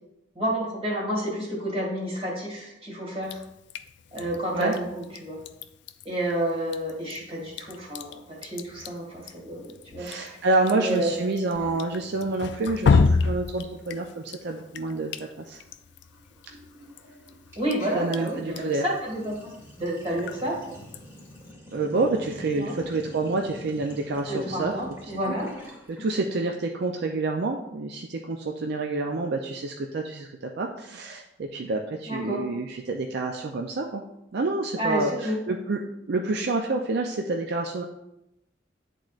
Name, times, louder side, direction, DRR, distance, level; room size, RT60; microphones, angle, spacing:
voice 1, 0.4-3.4 4.1-5.4 6.1-10.3 10.7-11.4 17.6-20.6 22.5-22.8 24.3-25.5 32.1-32.5 34.8-35.4, right 1 dB, 35° right, -2 dB, 1.9 m, -30 dB
Drip, 3.2-21.5, left 4 dB, 65° left, 0.4 m, -32 dB
voice 2, 10.0-15.6 17.9-18.9 21.7-24.7 25.3-25.4 25.9-34.0 34.3-35.8 36.1-37.8, right 3 dB, 65° right, 2 dB, 0.4 m, -28 dB
Sink (filling or washing), 11.6-13.8 14.1-14.4 14.6-26.0, left 1 dB, 15° right, 1.6 m, -46 dB
10.5 x 3.8 x 2.4 m, 0.87 s
head